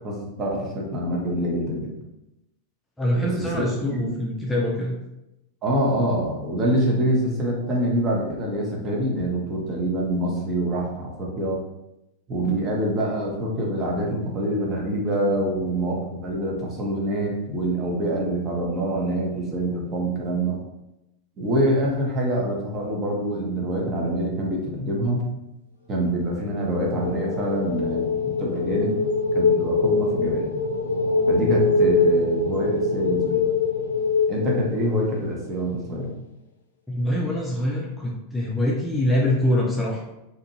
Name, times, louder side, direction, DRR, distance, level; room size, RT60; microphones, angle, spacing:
voice 1, 0.0-1.9 3.2-3.6 3.9-4.1 5.6-11.6 12.3-20.6 21.4-25.2 25.9-29.0 29.3-30.4 31.3-33.5 34.3-36.1, right 1 dB, 30° right, -2 dB, 0.8 m, -25 dB
voice 2, 3.0-5.0 36.9-40.0, left 1 dB, 5° left, -4 dB, 0.5 m, -24 dB
sound 1, 26.4-35.3, left 3 dB, 65° left, 0.4 m, -23 dB
2.7 x 2.5 x 2.7 m, 0.90 s
figure-of-eight pair, 90°, 0 cm